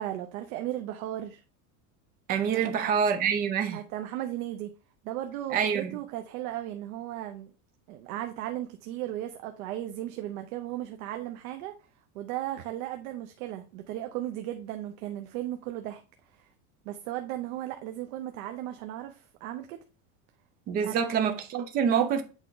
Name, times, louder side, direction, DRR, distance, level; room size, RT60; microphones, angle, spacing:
voice 1, 0.0-1.4 2.5-2.7 3.7-4.7 5.0-7.5 7.9-11.7 12.1-16.0 16.8-19.8 20.8-20.9, right 13 dB, 70° right, 0.8 m, -36 dB
voice 2, 2.3-3.8 5.5-6.0 20.7-22.2, right 7 dB, 20° right, 0.4 m, -26 dB
8.2 x 3.4 x 3.9 m
cardioid pair, 175°, 43 cm